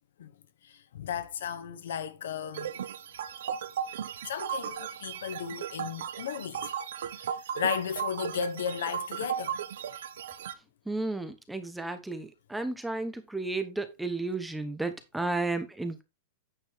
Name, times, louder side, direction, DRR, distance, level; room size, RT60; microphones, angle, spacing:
voice 1, 0.6-2.8 4.3-6.7 7.2-9.6, left 7 dB, 90° left, 1.3 m, -35 dB
sound 1, 2.5-10.5, right 8 dB, 85° right, 1.1 m, -36 dB
voice 2, 10.9-16.0, right 2 dB, 5° right, 0.9 m, -33 dB
9.3 x 7.0 x 3.4 m
supercardioid pair, 165°, 0 cm